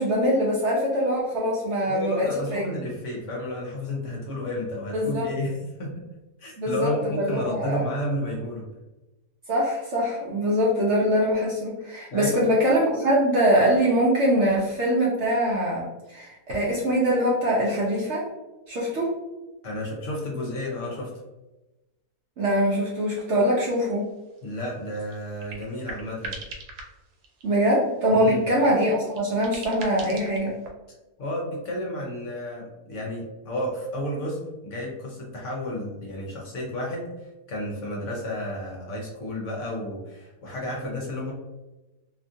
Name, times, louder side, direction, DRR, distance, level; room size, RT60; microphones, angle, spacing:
voice 1, 0.0-2.7 4.9-5.3 6.6-7.9 9.5-18.3 18.7-19.1 22.4-24.1 27.4-30.6, equal, 65° right, -4 dB, 0.7 m, -23 dB
voice 2, 1.9-5.9 6.4-8.7 12.1-12.3 19.6-21.1 24.4-26.4 28.1-28.4 31.2-41.3, left 1 dB, 60° left, -2 dB, 0.9 m, -32 dB
sound 1, 24.0-24.1 24.3-24.4 24.7-27.7 28.3-30.7, right 3 dB, 80° right, 1.1 m, -41 dB
2.8 x 2.4 x 2.6 m, 1.1 s
omnidirectional pair, 1.7 m